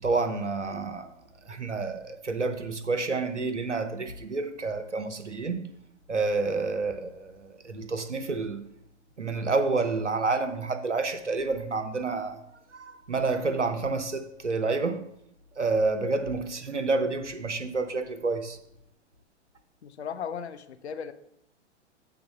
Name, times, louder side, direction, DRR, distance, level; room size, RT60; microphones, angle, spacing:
voice 1, 0.0-1.1 1.5-5.6 6.1-8.6 9.2-12.4 12.7-15.0 15.6-18.6, right 3 dB, 85° right, 9 dB, 0.8 m, -29 dB
voice 2, 19.8-21.1, left 7 dB, 70° left, 10 dB, 0.6 m, -36 dB
7.8 x 3.6 x 5.5 m, 0.76 s
figure-of-eight pair, 105°, 35 cm